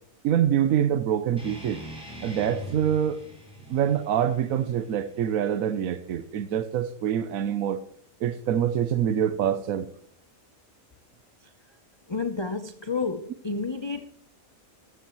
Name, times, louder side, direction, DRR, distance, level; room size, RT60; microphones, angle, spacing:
voice 1, 0.2-1.8 2.2-3.2 3.7-7.8 8.2-9.9, right 9 dB, 80° right, 12 dB, 1.1 m, -25 dB
sound 1, 1.4-6.4, equal, 5° right, 5.7 m, -43 dB
voice 2, 12.1-14.1, left 4 dB, 30° left, 9 dB, 0.5 m, -30 dB
14.0 x 12.5 x 3.0 m, 0.68 s
omnidirectional pair, 1.5 m